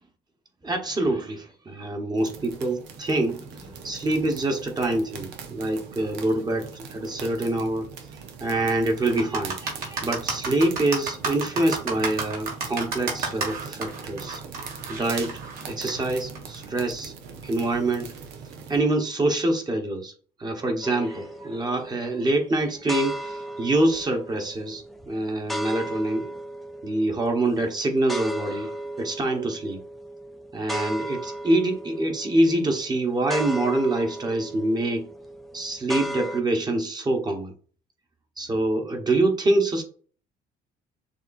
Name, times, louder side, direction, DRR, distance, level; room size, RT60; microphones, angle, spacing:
voice 1, 0.6-14.4 14.9-15.4 15.6-17.1 17.4-18.1 18.7-20.1 20.4-26.3 26.8-29.8 30.5-35.1 35.5-37.5 38.4-39.8, right 2 dB, 25° right, 4 dB, 1.2 m, -25 dB
sound 1, 2.2-18.8, right 6 dB, 85° right, 1.0 m, -41 dB
sound 2, 9.1-16.6, right 4 dB, 60° right, 2.1 m, -31 dB
sound 3, 20.8-36.4, right 1 dB, ahead, 0.5 m, -36 dB
6.6 x 2.8 x 2.6 m, 0.43 s
cardioid pair, 110°, 17 cm